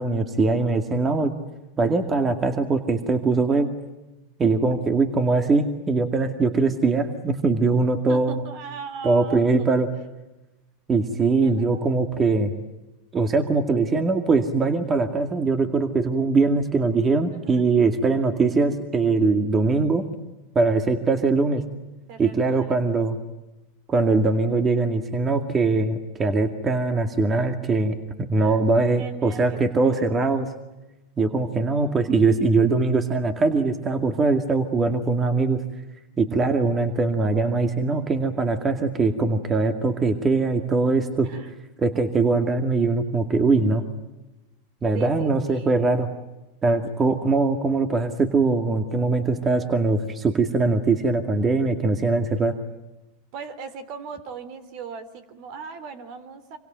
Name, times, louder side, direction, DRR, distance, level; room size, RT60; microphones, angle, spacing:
voice 1, 0.0-1.3 1.8-3.7 4.4-8.4 9.0-9.9 10.9-12.5 13.1-20.0 20.6-21.6 22.2-23.2 23.9-30.5 31.2-35.6 36.2-41.3 41.8-43.8 44.8-46.1 46.6-52.5, right 3 dB, 25° right, 7 dB, 2.2 m, -22 dB
voice 2, 8.1-9.7 11.4-11.9 17.3-17.6 21.6-21.7 22.1-23.0 28.3-28.6 29.0-30.1 41.2-41.5 44.9-45.8 53.3-56.6, right 6 dB, 55° right, 12 dB, 3.4 m, -39 dB
26.5 x 24.0 x 9.2 m, 1.0 s
hypercardioid pair, 115°, 0 cm